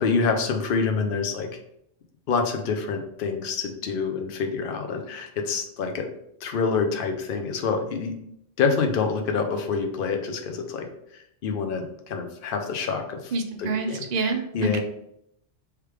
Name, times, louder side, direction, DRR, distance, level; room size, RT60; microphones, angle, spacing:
voice 1, 0.0-1.5 2.3-6.1 6.4-8.2 8.6-10.9 11.4-13.3 13.6-14.0 14.5-14.8, left 5 dB, 55° left, 5 dB, 0.7 m, -26 dB
voice 2, 13.3-14.8, right 3 dB, 50° right, 3 dB, 0.5 m, -27 dB
3.3 x 3.2 x 4.8 m, 0.76 s
omnidirectional pair, 1.2 m